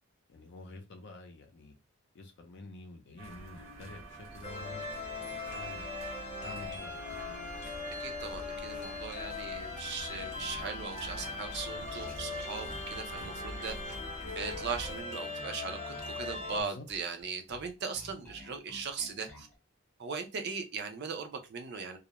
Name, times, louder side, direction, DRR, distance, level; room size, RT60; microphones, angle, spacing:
voice 1, 0.3-1.7 2.1-4.9 5.2-5.9 6.4-7.5 16.5-16.9, left 2 dB, 60° left, 5 dB, 0.5 m, -49 dB
sound 1, 3.2-15.0, right 1 dB, 75° right, 1.0 m, -47 dB
sound 2, 4.4-16.6, left 3 dB, 35° left, 0.8 m, -40 dB
voice 2, 8.0-13.8 14.4-19.5 20.0-22.0, right 5 dB, 55° right, 6 dB, 0.5 m, -39 dB
Bass guitar, 10.0-19.6, left 1 dB, 10° left, 0.7 m, -53 dB
2.3 x 2.1 x 2.9 m, 0.26 s
head